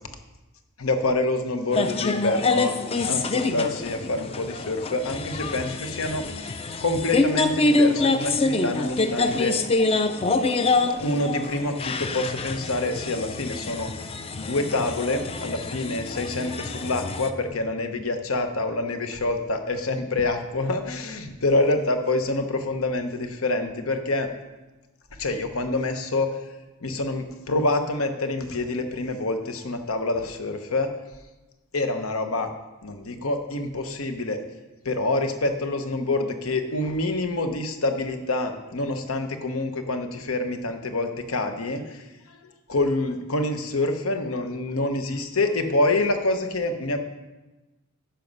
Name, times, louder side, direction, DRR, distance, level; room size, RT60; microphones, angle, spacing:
voice 1, 0.8-2.7 3.1-6.2 6.8-9.5 11.0-13.9 14.4-24.3 25.2-26.4 26.8-30.9 31.7-32.5 32.8-34.4 34.8-42.0 42.7-47.0, left 2 dB, 85° left, 7 dB, 1.0 m, -26 dB
sound 1, 1.7-17.3, left 3 dB, 30° left, 0.4 m, -26 dB
10.0 x 5.9 x 5.4 m, 1.1 s
head